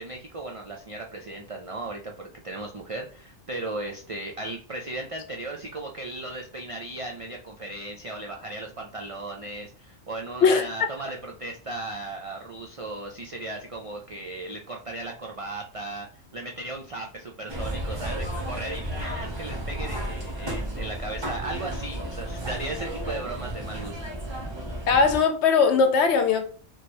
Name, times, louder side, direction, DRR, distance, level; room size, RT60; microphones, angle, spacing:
voice 1, 0.0-16.1 16.3-24.0, right 2 dB, 60° right, 0.3 m, -36 dB
sound 1, 17.5-25.2, right 1 dB, 25° right, 0.8 m, -33 dB
voice 2, 24.9-26.4, left 5 dB, 65° left, 0.9 m, -20 dB
3.1 x 2.9 x 4.3 m
omnidirectional pair, 1.3 m